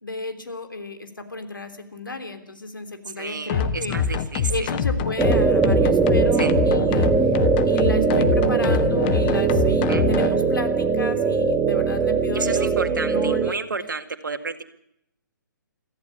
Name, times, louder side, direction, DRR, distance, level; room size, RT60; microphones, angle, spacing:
voice 1, 0.0-3.9 4.5-7.1 7.6-13.6, left 2 dB, 80° left, 7 dB, 3.2 m, -33 dB
voice 2, 3.2-4.7 6.4-6.5 9.9-10.0 12.3-14.6, right 4 dB, 70° right, 7 dB, 2.0 m, -31 dB
sound 1, 3.5-10.3, left 7 dB, 30° left, 1.3 m, -24 dB
sound 2, 5.2-13.5, right 5 dB, 10° right, 1.4 m, -21 dB
23.0 x 14.5 x 8.5 m, 0.76 s
figure-of-eight pair, 130°, 11 cm